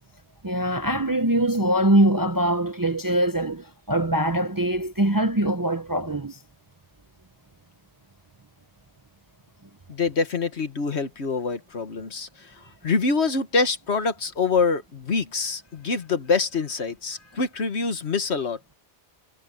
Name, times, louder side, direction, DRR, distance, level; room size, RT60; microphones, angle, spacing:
voice 1, 0.4-6.4, right 1 dB, 20° right, 0.7 m, -23 dB
voice 2, 9.9-12.5 12.8-18.6, left 4 dB, 65° left, 1.7 m, -25 dB
omnidirectional pair, 1.2 m